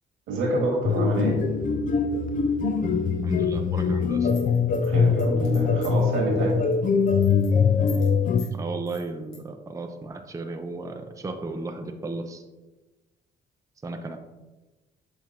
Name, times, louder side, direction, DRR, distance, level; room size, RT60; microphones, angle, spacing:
voice 1, 0.3-1.4 4.8-6.6, right 2 dB, 90° right, -2 dB, 1.8 m, -27 dB
sound 1, 0.8-8.4, left 5 dB, 40° left, 0.5 m, -23 dB
voice 2, 3.2-4.3 8.5-12.4 13.8-14.3, right 3 dB, 15° right, 4 dB, 0.5 m, -34 dB
sound 2, 4.3-6.1 6.5-6.7 7.0-7.5 7.9-8.1 8.4-8.5 8.9-9.4, left 5 dB, 85° left, 1.8 m, -45 dB
7.3 x 4.5 x 2.9 m, 1.2 s
cardioid pair, 90°, 20 cm